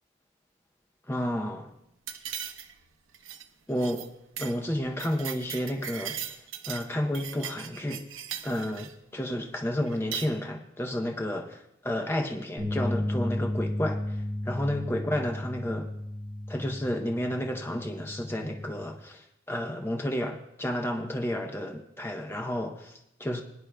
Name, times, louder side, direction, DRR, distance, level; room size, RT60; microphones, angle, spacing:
voice 1, 1.1-1.7 3.7-4.1 4.4-8.0 8.4-11.6 11.8-15.9 16.5-23.4, left 1 dB, 10° left, 2 dB, 0.7 m, -31 dB
sound 1, 2.1-2.9 3.1-3.4 3.8-4.1 4.4-4.6 4.8-6.9 7.1-8.9 9.9-10.3, right 9 dB, 90° right, 0.8 m, -38 dB
sound 2, 12.6-18.8, left 1 dB, 25° right, 3.2 m, -34 dB
21.0 x 10.0 x 2.3 m, 0.82 s
head